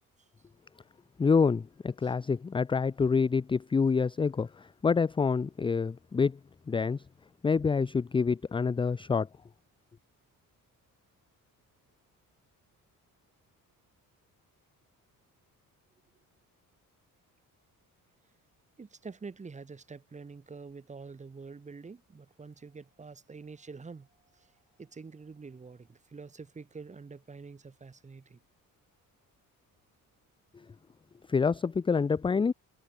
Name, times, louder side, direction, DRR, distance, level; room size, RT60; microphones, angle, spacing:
voice 1, 1.2-6.4 6.7-7.0 7.4-9.3 30.5-30.6 31.3-32.5, left 5 dB, 15° left, 0.5 m, -27 dB
voice 2, 18.8-24.1 24.3-24.5 24.8-28.4, right 4 dB, 20° right, 3.9 m, -46 dB
cardioid pair, 180°, 34 cm